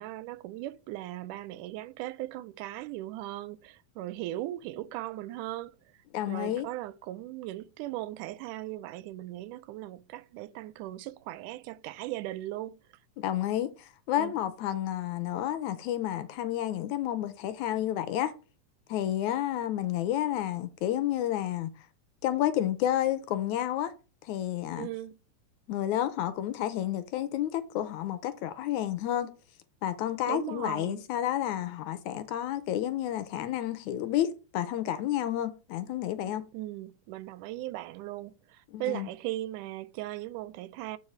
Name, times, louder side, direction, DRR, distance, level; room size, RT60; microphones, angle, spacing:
voice 1, 0.0-5.8 6.3-12.7 14.2-14.3 24.8-25.1 30.3-31.0 36.5-41.0, right 16 dB, 85° right, 2.1 m, -38 dB
voice 2, 6.1-6.7 13.2-13.7 14.1-18.3 18.9-21.7 22.2-23.9 24.3-24.9 25.7-29.3 29.8-36.4 38.7-39.1, left 12 dB, 80° left, 2.0 m, -30 dB
8.6 x 4.8 x 4.5 m
omnidirectional pair, 3.6 m